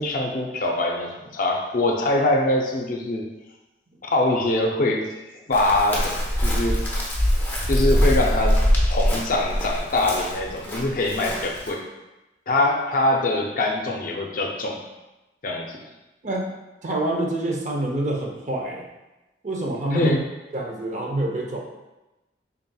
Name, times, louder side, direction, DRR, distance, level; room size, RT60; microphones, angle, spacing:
voice 1, 0.0-3.3 4.0-6.8 7.7-11.9 12.5-14.8 15.4-15.8 19.9-20.2, left 2 dB, 50° left, 1 dB, 0.5 m, -23 dB
Chirp tweet, 5.5-11.7, equal, 10° left, 0.7 m, -23 dB
voice 2, 16.2-16.5 16.8-18.8 19.4-20.1 20.5-21.6, right 1 dB, 45° right, -1 dB, 0.6 m, -26 dB
4.1 x 3.6 x 2.3 m, 1.0 s
head